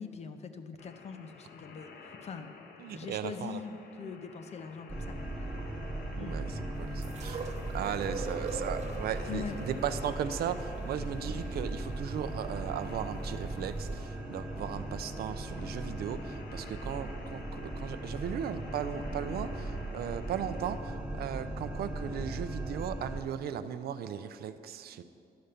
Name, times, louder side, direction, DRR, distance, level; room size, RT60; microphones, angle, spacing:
voice 1, 0.0-2.5 2.9-5.2 6.2-6.4 8.1-8.3 9.3-9.6, left 6 dB, 40° left, 8 dB, 0.6 m, -42 dB
sound 1, 0.8-20.8, left 4 dB, 70° left, 1.0 m, -52 dB
voice 2, 2.8-3.6 6.2-25.0, right 9 dB, 65° right, 11 dB, 0.5 m, -37 dB
sound 2, 4.9-23.2, right 1 dB, 5° right, 0.9 m, -38 dB
sound 3, 7.0-13.1 13.9-14.0, right 5 dB, 40° right, 0.9 m, -43 dB
10.5 x 5.6 x 6.6 m, 2.5 s
cardioid pair, 140°, 17 cm